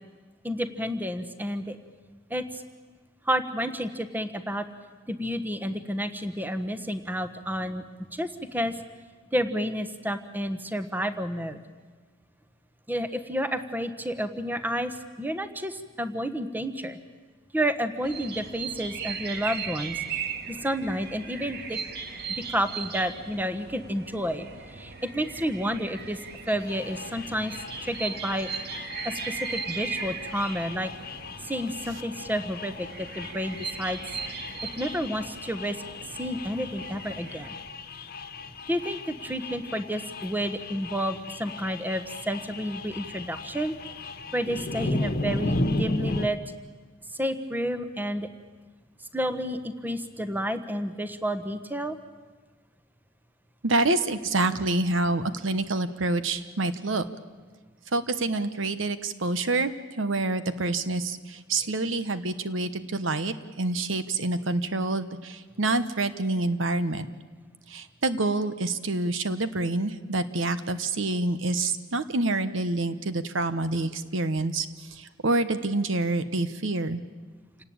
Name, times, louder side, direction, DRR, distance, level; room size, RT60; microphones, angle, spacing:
voice 1, 0.4-1.8 2.3-2.6 3.2-4.7 5.1-7.9 8.1-8.7 9.3-11.6 12.9-17.0 17.5-20.0 20.5-21.8 22.5-26.2 26.5-28.5 29.0-30.9 31.4-34.0 34.8-35.8 36.2-37.6 38.7-43.7 44.3-46.6 47.1-48.3 49.1-52.0, equal, 10° right, 10 dB, 1.2 m, -30 dB
sound 1, 18.0-37.5, right 5 dB, 55° right, 1.7 m, -38 dB
sound 2, 26.6-46.3, left 2 dB, 50° left, 1.3 m, -36 dB
voice 2, 53.6-57.1 57.9-67.1 67.7-74.7 74.9-77.0, right 2 dB, 80° right, 12 dB, 1.2 m, -27 dB
28.0 x 18.5 x 8.7 m, 1.4 s
head